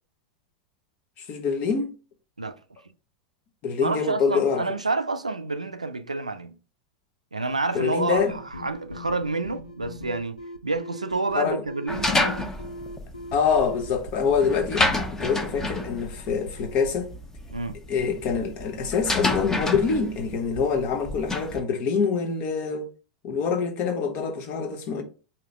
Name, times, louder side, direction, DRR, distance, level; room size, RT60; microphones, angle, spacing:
voice 1, 1.2-1.9 3.6-4.7 7.7-8.3 11.3-11.6 13.3-17.1 17.9-22.8 23.2-25.0, left 6 dB, 45° left, 1.0 m, -25 dB
voice 2, 3.8-6.6 7.3-12.5 17.5-17.8, right 3 dB, 85° right, 0.4 m, -29 dB
sound 1, 8.2-17.1, left 1 dB, 90° left, 0.5 m, -41 dB
sound 2, 11.9-21.6, left 2 dB, 15° left, 0.9 m, -29 dB
4.9 x 2.9 x 3.5 m
figure-of-eight pair, 85°, 4 cm